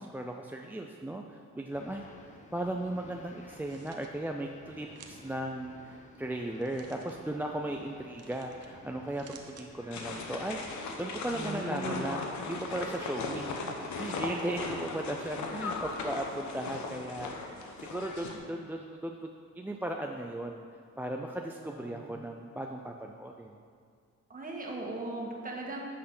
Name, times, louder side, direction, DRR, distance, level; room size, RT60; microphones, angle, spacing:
voice 1, 0.1-2.0 2.5-13.6 13.9-17.3 17.8-19.3 19.5-20.6 21.0-23.6, right 1 dB, 5° right, 2 dB, 0.4 m, -37 dB
sound 1, 1.7-10.5, left 2 dB, 25° left, 0.9 m, -53 dB
sound 2, 3.4-4.1 4.9-5.4 6.5-7.2 8.2-8.7 9.0-9.7, right 6 dB, 55° right, 0.9 m, -54 dB
sound 3, 9.9-18.4, left 4 dB, 70° left, 1.0 m, -38 dB
voice 2, 11.4-12.1 14.4-14.5 21.7-22.1 24.3-25.8, right 2 dB, 30° right, -2 dB, 1.8 m, -38 dB
9.8 x 6.5 x 3.9 m, 2.1 s
cardioid pair, 90°, 30 cm